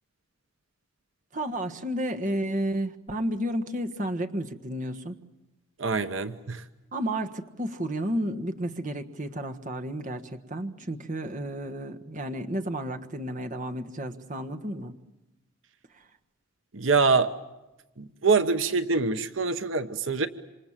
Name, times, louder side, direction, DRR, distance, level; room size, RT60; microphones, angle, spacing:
voice 1, 1.3-5.2 6.9-15.0, right 1 dB, 40° right, 6 dB, 1.4 m, -32 dB
voice 2, 5.8-6.6 16.7-17.3 18.0-20.3, right 4 dB, 75° right, 10 dB, 1.1 m, -25 dB
27.0 x 26.5 x 7.4 m, 1.0 s
head